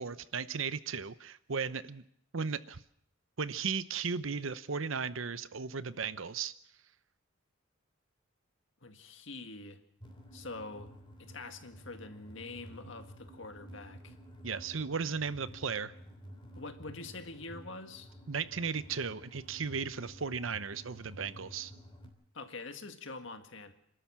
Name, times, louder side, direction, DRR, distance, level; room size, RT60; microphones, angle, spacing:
voice 1, 0.0-2.0 2.3-2.8 3.4-6.5 14.4-15.9 18.3-21.7, right 5 dB, 75° right, 14 dB, 0.9 m, -36 dB
voice 2, 8.8-9.8 10.3-10.9 11.2-14.1 16.6-18.1 22.3-23.7, left 3 dB, 65° left, 7 dB, 1.9 m, -45 dB
sound 1, 10.0-22.1, equal, 25° left, 3.2 m, -51 dB
27.5 x 13.0 x 7.5 m, 0.71 s
head